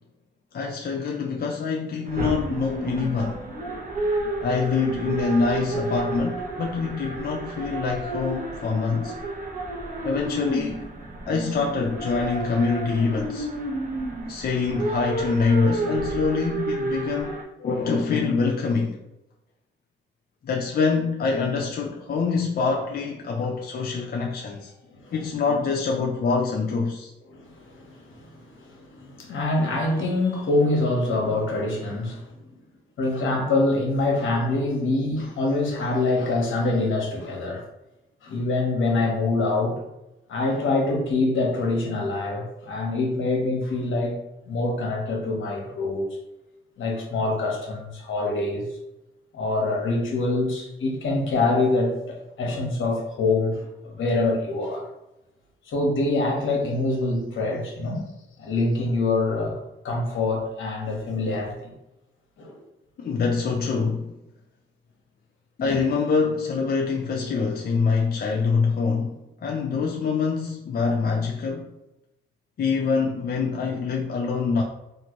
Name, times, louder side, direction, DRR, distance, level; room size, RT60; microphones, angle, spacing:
voice 1, 0.5-3.4 4.4-9.2 10.0-10.9 11.3-13.5 14.3-19.0 20.4-24.7 25.1-27.1 63.0-64.1 65.6-71.7 72.6-74.6, left 4 dB, 45° left, 0.4 m, -25 dB
sound 1, 2.0-17.4, right 2 dB, 40° right, 0.9 m, -31 dB
voice 2, 27.3-32.3 33.0-37.6 38.2-39.8 40.3-44.2 44.5-46.2 46.8-48.7 49.3-54.9 55.7-58.1 58.4-59.6 59.8-61.7 62.4-62.5 65.6-65.8, left 2 dB, 70° left, 1.0 m, -25 dB
3.0 x 2.5 x 2.9 m
cardioid pair, 65°, 21 cm